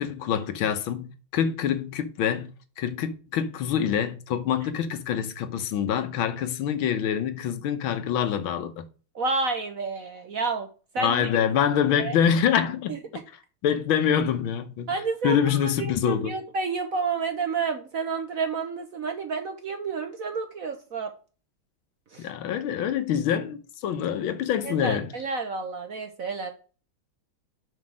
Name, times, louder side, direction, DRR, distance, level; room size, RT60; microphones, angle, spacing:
voice 1, 0.0-8.8 11.0-12.9 13.6-14.9 15.2-16.4 22.2-25.1, left 8 dB, 75° left, 1.7 m, -25 dB
voice 2, 9.1-10.7 10.9-11.3 12.0-12.2 12.9-13.0 14.9-21.1 22.1-22.3 24.6-26.5, right 4 dB, 55° right, 1.0 m, -30 dB
5.8 x 5.7 x 6.2 m
omnidirectional pair, 2.3 m